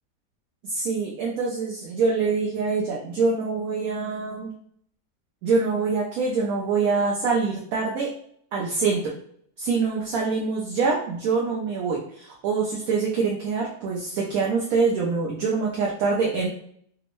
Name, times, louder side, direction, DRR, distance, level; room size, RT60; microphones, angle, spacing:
voice 1, 0.6-4.5 5.4-8.1 8.5-9.1 9.6-16.5, right 4 dB, 65° right, -3 dB, 0.9 m, -25 dB
3.4 x 2.0 x 3.0 m, 0.64 s
omnidirectional pair, 1.9 m